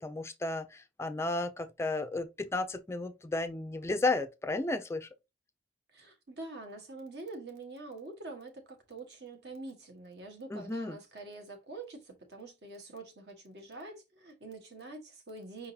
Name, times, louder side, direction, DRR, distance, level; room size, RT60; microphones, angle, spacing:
voice 1, 0.0-5.1 10.5-11.0, left 2 dB, 15° left, 0.3 m, -33 dB
voice 2, 5.9-15.7, right 2 dB, 70° right, 1.4 m, -45 dB
5.2 x 3.8 x 2.7 m
head